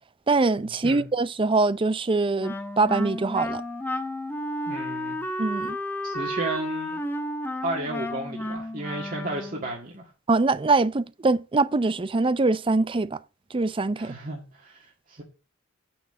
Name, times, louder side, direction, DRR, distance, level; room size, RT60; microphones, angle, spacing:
voice 1, 0.3-3.6 5.4-5.8 10.3-13.2 13.5-14.1, right 3 dB, 25° right, 0.5 m, -23 dB
Wind instrument woodwind instrument, 2.4-9.7, left 1 dB, 10° left, 1.1 m, -32 dB
voice 2, 4.7-5.2 6.0-7.0 7.6-10.1 13.9-15.2, right 2 dB, 45° right, 1.9 m, -33 dB
8.7 x 6.3 x 7.6 m
head